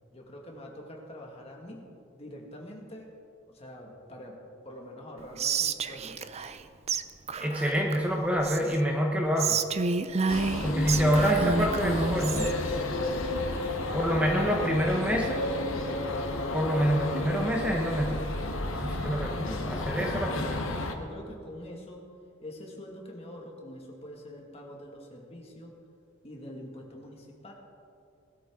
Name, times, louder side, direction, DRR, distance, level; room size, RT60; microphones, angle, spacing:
voice 1, 0.1-3.1 3.5-6.2 13.4-14.9 18.8-20.7 21.0-22.1 22.4-25.7 26.2-27.5, equal, 30° left, 0 dB, 2.1 m, -45 dB
Whispering, 5.4-6.6 6.9-7.0 7.3-8.8 9.4-12.5, right 4 dB, 35° right, 0.5 m, -29 dB
voice 2, 7.4-9.6 10.6-12.5 13.9-15.5 16.5-18.2 18.7-20.7, equal, 5° right, -1 dB, 1.1 m, -27 dB
sound 1, 10.3-20.9, left 2 dB, 80° left, 1.3 m, -32 dB
19.5 x 12.5 x 3.8 m, 2.5 s
head